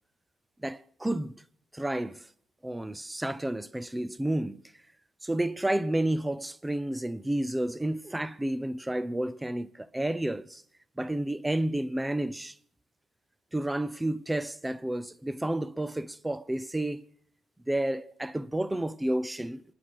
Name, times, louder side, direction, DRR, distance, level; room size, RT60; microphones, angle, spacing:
voice 1, 0.6-1.3 1.7-2.3 2.6-4.6 5.2-10.6 11.0-12.6 13.5-17.1 17.7-19.6, right 1 dB, 10° right, 0.7 m, -31 dB
27.5 x 10.5 x 4.8 m
cardioid pair, 90°, 0 cm